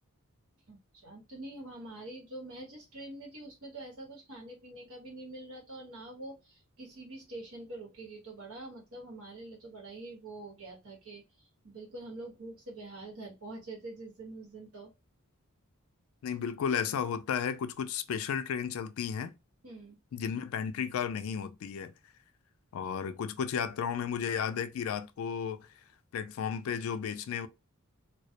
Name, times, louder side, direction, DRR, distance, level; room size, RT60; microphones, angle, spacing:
voice 1, 0.7-14.9 19.6-20.0, right 2 dB, 75° right, 1.0 m, -45 dB
voice 2, 16.2-19.3 20.1-21.9 22.7-25.7 26.1-27.5, left 7 dB, 70° left, 0.3 m, -33 dB
2.2 x 2.0 x 2.7 m
head